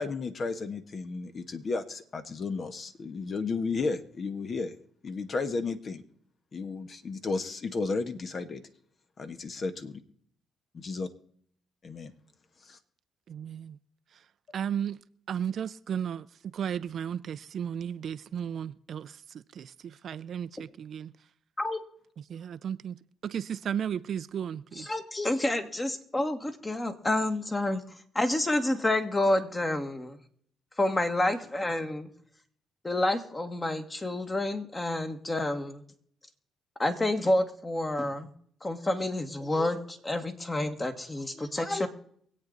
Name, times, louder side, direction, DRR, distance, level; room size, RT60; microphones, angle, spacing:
voice 1, 0.0-4.7 5.0-6.0 6.5-8.6 9.2-10.0 10.7-11.1 11.8-12.1 12.7-12.8, left 4 dB, 45° left, 1.3 m, -33 dB
voice 2, 13.3-13.8 14.1-14.2 14.5-15.0 15.3-16.3 16.5-21.1 22.2-23.0 23.2-24.9, right 8 dB, 60° right, 0.5 m, -34 dB
voice 3, 24.8-27.8 28.1-30.2 30.8-32.1 32.8-35.8 36.8-38.3 38.6-41.9, left 1 dB, 20° left, 1.7 m, -29 dB
24.0 x 8.5 x 4.0 m
cardioid pair, 90°, 0 cm